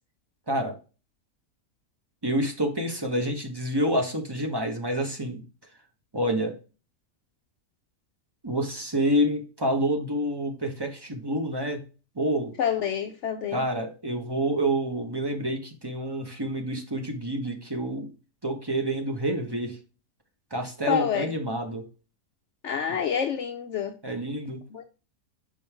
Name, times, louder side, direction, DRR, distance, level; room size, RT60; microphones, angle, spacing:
voice 1, 0.5-0.8 2.2-5.4 6.1-6.6 8.4-11.8 12.1-12.5 13.5-18.1 18.4-19.8 20.5-21.8 24.0-24.6, right 1 dB, 20° right, 1.0 m, -28 dB
voice 2, 12.6-13.6 20.9-21.3 22.6-23.9 24.7-24.8, left 8 dB, 65° left, 0.8 m, -27 dB
5.4 x 5.3 x 3.4 m
omnidirectional pair, 1.5 m